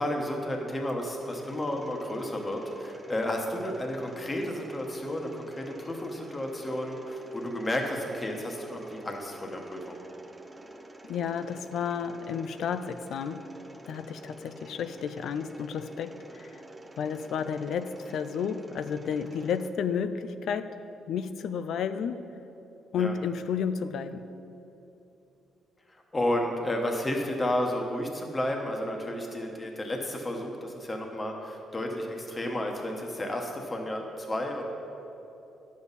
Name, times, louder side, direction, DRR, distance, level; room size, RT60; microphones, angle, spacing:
voice 1, 0.0-10.0 22.9-23.1 25.9-34.7, left 1 dB, 25° left, 2 dB, 1.1 m, -32 dB
Mechanisms, 1.2-19.7, right 2 dB, 15° right, 0.7 m, -48 dB
voice 2, 11.1-13.5 13.9-16.6 17.0-20.8 21.1-22.3 22.9-24.3, left 7 dB, 70° left, 11 dB, 0.4 m, -32 dB
10.0 x 7.3 x 4.0 m, 2.9 s
cardioid pair, 90°, 0 cm